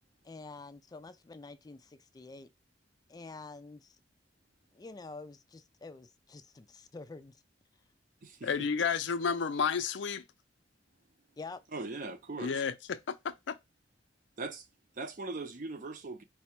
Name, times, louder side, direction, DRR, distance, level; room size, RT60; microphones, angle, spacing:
voice 1, 0.2-2.5 3.1-4.0 4.7-7.4 11.4-11.6, left 3 dB, 20° left, 0.3 m, -47 dB
voice 2, 8.4-10.2 12.4-13.6, left 6 dB, 85° left, 0.5 m, -31 dB
voice 3, 11.7-12.6 14.4-14.6 15.0-16.2, right 3 dB, 50° right, 0.6 m, -40 dB
4.7 x 2.1 x 4.3 m
head